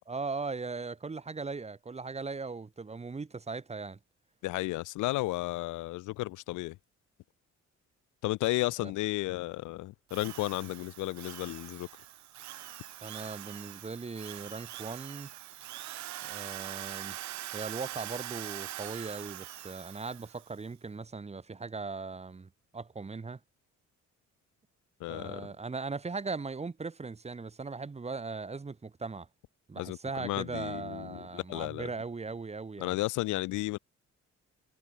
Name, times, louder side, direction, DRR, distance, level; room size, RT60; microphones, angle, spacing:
voice 1, 0.1-4.0 8.8-8.9 13.0-15.3 16.2-17.2 17.5-23.4 25.1-29.3 29.7-33.0, right 4 dB, 20° right, 1.1 m, -39 dB
voice 2, 4.4-6.8 8.2-11.9 25.0-25.5 29.8-31.9 32.8-33.8, left 19 dB, 80° left, 0.5 m, -33 dB
Drill, 10.1-20.5, right 14 dB, 70° right, 0.8 m, -43 dB
cardioid pair, 90°, 30 cm